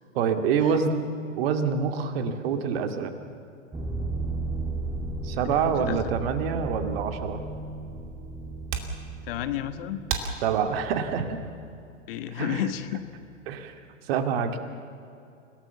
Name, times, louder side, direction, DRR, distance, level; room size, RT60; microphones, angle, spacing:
voice 1, 0.1-1.1 1.4-3.1 5.2-7.4 10.4-11.4 12.4-12.7 13.5-13.7 14.1-14.6, right 6 dB, 50° right, 7 dB, 2.5 m, -26 dB
sound 1, 3.7-12.5, right 2 dB, 10° right, 1.7 m, -35 dB
voice 2, 5.4-6.1 9.2-10.0 12.1-13.0, left 12 dB, 45° left, 11 dB, 1.6 m, -32 dB
sound 2, 8.4-12.6, right 6 dB, 30° right, 2.6 m, -39 dB
29.5 x 18.0 x 7.0 m, 2.6 s
figure-of-eight pair, 105°, 39 cm